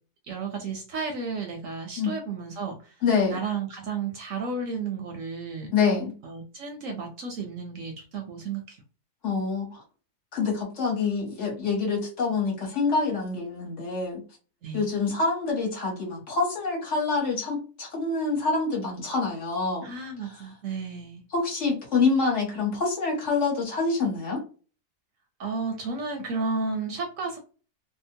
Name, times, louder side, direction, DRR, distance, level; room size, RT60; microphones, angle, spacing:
voice 1, 0.3-3.0 3.3-5.7 6.2-8.8 14.6-14.9 19.8-21.2 25.4-27.4, right 4 dB, 65° right, 3 dB, 0.9 m, -33 dB
voice 2, 3.0-3.4 5.7-6.1 9.2-9.8 10.3-14.2 14.7-19.9 21.3-24.4, left 4 dB, 50° left, -2 dB, 1.2 m, -26 dB
2.8 x 2.1 x 2.6 m, 0.36 s
omnidirectional pair, 1.7 m